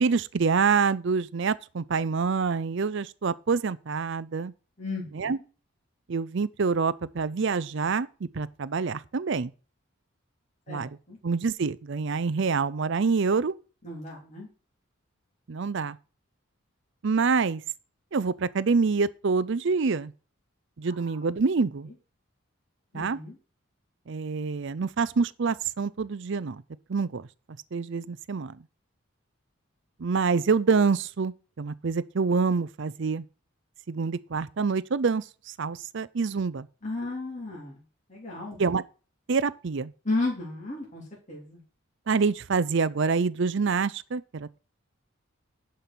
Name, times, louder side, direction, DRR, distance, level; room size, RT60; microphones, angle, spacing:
voice 1, 0.0-4.5 5.1-5.4 6.1-9.5 10.7-10.9 11.2-13.5 15.5-16.0 17.0-17.6 18.1-20.1 20.8-21.9 22.9-23.2 24.1-26.6 26.9-27.3 27.7-28.6 30.0-33.2 33.9-35.2 35.6-36.7 38.6-38.8 39.3-39.9 42.1-44.6, right 5 dB, 60° right, 0.5 m, -26 dB
voice 2, 4.8-5.3 10.7-11.2 13.8-14.5 20.8-21.2 22.9-23.4 36.8-37.8 38.1-38.6 40.0-41.0 41.3-41.6, left 2 dB, 35° left, 3.3 m, -33 dB
11.0 x 5.4 x 6.1 m
head